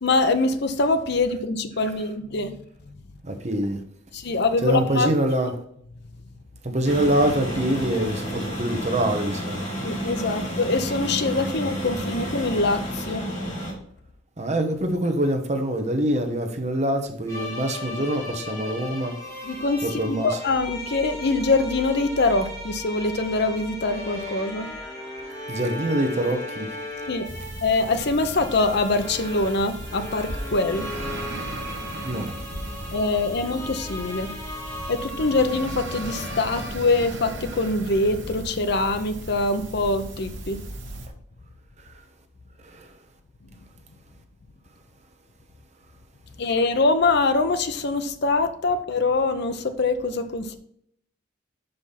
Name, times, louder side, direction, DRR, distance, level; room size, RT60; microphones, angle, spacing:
voice 1, 0.0-2.6 4.1-5.1 9.8-13.3 19.4-24.7 27.1-27.3 27.6-30.9 32.9-34.3 34.9-40.6 46.4-50.6, left 3 dB, 60° left, 0.7 m, -24 dB
voice 2, 3.2-3.8 4.6-5.5 6.6-9.7 14.4-19.1 19.8-20.3 25.5-26.7 32.0-32.3 42.7-42.9, right 1 dB, 35° right, 1.0 m, -24 dB
sound 1, 6.8-13.7, equal, 40° left, 2.2 m, -31 dB
sound 2, 17.3-36.7, left 2 dB, 15° left, 2.3 m, -37 dB
sound 3, 27.2-41.1, right 2 dB, 65° right, 1.1 m, -37 dB
5.8 x 5.2 x 4.1 m
head